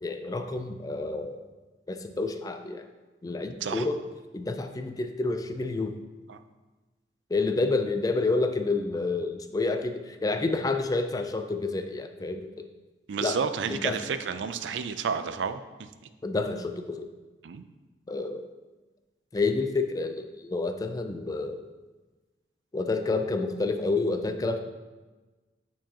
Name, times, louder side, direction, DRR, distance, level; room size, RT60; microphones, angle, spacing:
voice 1, 0.0-1.4 1.9-2.8 3.2-4.0 4.3-5.9 7.3-12.7 13.2-13.4 13.7-14.0 16.2-17.1 18.1-18.5 19.3-21.6 22.7-24.6, left 3 dB, 20° left, 7 dB, 0.4 m, -29 dB
voice 2, 13.1-15.9 17.4-17.6, right 6 dB, 90° right, 10 dB, 0.4 m, -31 dB
8.9 x 4.5 x 2.8 m, 1.2 s
head